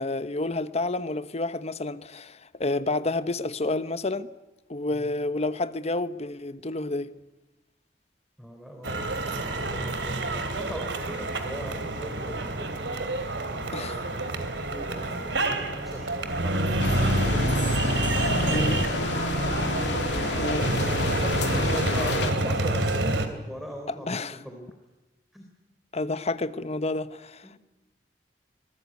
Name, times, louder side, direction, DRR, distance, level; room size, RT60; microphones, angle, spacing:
voice 1, 0.0-4.3 4.7-7.1 13.7-14.0 18.4-18.8 20.4-20.7 23.9-24.4 25.9-27.5, left 2 dB, 35° left, 1.1 m, -29 dB
voice 2, 8.4-12.7 13.5-17.9 18.1-18.7 19.7-24.7 25.3-25.5 27.4-27.5, equal, ahead, 3.7 m, -41 dB
sound 1, 8.8-23.3, right 2 dB, 90° right, 3.0 m, -27 dB
sound 2, 16.8-22.3, left 3 dB, 85° left, 3.1 m, -30 dB
25.5 x 20.0 x 9.5 m
head